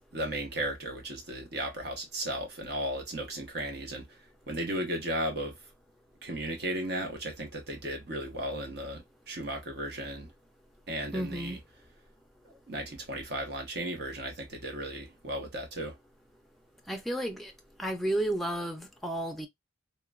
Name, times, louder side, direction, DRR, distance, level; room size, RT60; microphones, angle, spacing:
voice 1, 0.1-4.2 4.5-5.6 6.2-10.3 10.9-11.6 12.7-16.0, right 1 dB, 60° right, 0.9 m, -35 dB
voice 2, 11.1-11.6 16.9-17.5 17.8-19.5, right 1 dB, ahead, 0.4 m, -32 dB
2.9 x 2.2 x 2.3 m
head